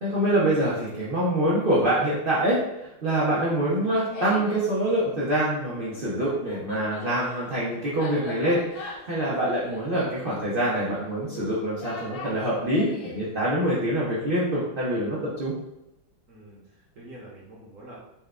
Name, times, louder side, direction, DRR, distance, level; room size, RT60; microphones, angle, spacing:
voice 1, 0.0-15.5, right 1 dB, 85° right, -7 dB, 0.4 m, -25 dB
Laughter, 3.6-4.7 5.9-13.2, left 4 dB, 70° left, 0.9 m, -41 dB
voice 2, 16.3-18.0, right 1 dB, 55° right, -4 dB, 0.9 m, -47 dB
4.3 x 2.2 x 3.6 m, 0.91 s
omnidirectional pair, 2.1 m